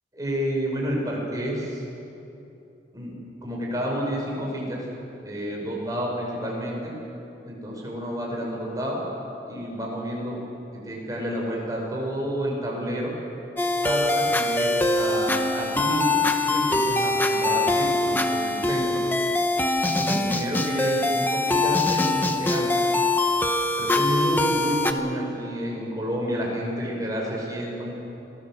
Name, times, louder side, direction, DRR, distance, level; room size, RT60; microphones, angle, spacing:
voice 1, 0.1-1.8 2.9-3.1 3.4-4.8 5.2-6.9 7.5-9.0 9.5-10.4 10.7-13.1 13.8-19.0 19.8-22.7 23.8-27.9, equal, 20° right, -2 dB, 5.8 m, -30 dB
sound 1, 13.6-24.9, left 2 dB, 10° left, 1.0 m, -23 dB
26.0 x 19.0 x 7.6 m, 2.9 s
head